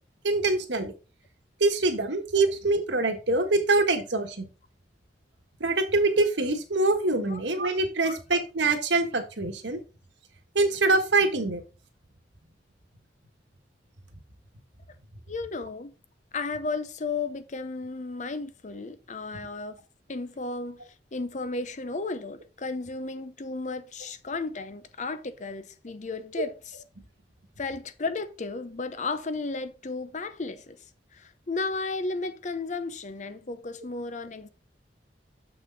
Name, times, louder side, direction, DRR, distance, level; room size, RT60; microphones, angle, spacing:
voice 1, 0.2-0.9 1.6-4.5 5.6-9.8 10.5-11.6, right 3 dB, 90° right, 1.5 m, -24 dB
voice 2, 15.3-15.9 16.3-19.8 20.1-20.8 21.1-26.8 27.6-30.8 31.1-34.5, left 3 dB, 40° left, 0.7 m, -34 dB
7.0 x 6.2 x 4.0 m
head